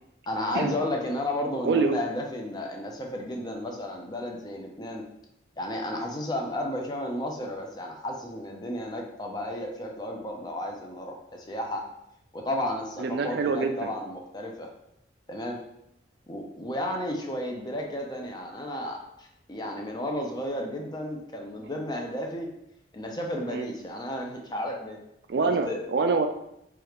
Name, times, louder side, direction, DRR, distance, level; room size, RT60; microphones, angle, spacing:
voice 1, 0.3-5.1 5.6-11.9 12.3-14.7 15.3-15.6 16.3-22.5 22.9-25.0 25.4-25.8, left 1 dB, 20° left, 1 dB, 0.5 m, -33 dB
voice 2, 1.7-2.0 13.0-13.9 23.5-23.7 25.3-26.3, right 4 dB, 60° right, 7 dB, 0.4 m, -25 dB
4.8 x 2.4 x 3.0 m, 0.78 s
head